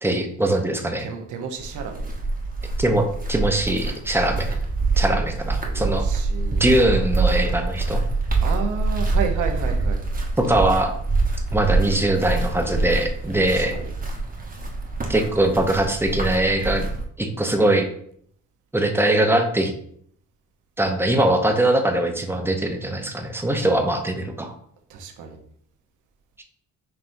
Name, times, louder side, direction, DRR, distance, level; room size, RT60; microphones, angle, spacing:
voice 1, 0.0-1.1 2.8-4.6 5.0-6.1 6.6-8.0 10.4-11.0 11.5-13.7 15.1-16.9 17.2-17.9 18.7-19.7 20.8-24.5 26.4-26.5, right 1 dB, 10° right, 4 dB, 0.7 m, -21 dB
voice 2, 1.0-2.1 5.0-5.3 5.6-6.7 8.4-10.0 13.5-13.9 24.9-25.4, right 6 dB, 80° right, 4 dB, 0.9 m, -32 dB
sound 1, 1.6-17.0, right 3 dB, 30° right, 1.0 m, -25 dB
5.7 x 3.2 x 2.6 m, 0.65 s
cardioid pair, 90°, 30 cm